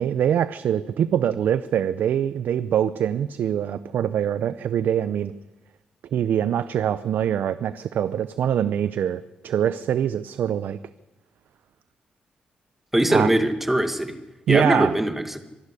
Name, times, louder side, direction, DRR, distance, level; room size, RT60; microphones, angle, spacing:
voice 1, 0.0-5.3 6.1-10.8 13.1-13.3 14.5-14.9, right 9 dB, 85° right, 14 dB, 0.6 m, -24 dB
voice 2, 12.9-14.2 14.5-15.4, right 1 dB, 10° right, 8 dB, 1.9 m, -21 dB
25.0 x 12.0 x 9.8 m, 1.1 s
cardioid pair, 120°, 3 cm